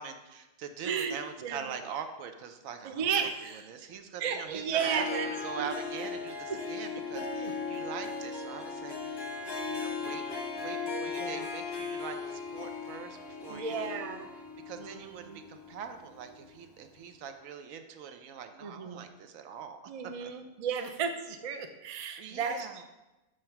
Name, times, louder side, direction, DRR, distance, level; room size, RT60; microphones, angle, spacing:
voice 1, 0.0-3.2 3.5-9.2 9.7-10.2 10.6-14.0 14.7-19.8 20.2-20.3 22.2-22.8, right 7 dB, 80° right, 7 dB, 1.0 m, -43 dB
voice 2, 0.8-1.7 2.8-3.7 4.2-5.3 5.6-5.7 6.5-6.6 7.1-7.5 11.2-11.5 13.5-14.3 14.8-15.4 18.6-19.0 19.9-22.8, right 7 dB, 65° right, 6 dB, 0.3 m, -34 dB
Harp, 4.7-16.5, left 4 dB, 25° left, 0.6 m, -37 dB
7.6 x 3.2 x 5.7 m, 1.0 s
omnidirectional pair, 1.4 m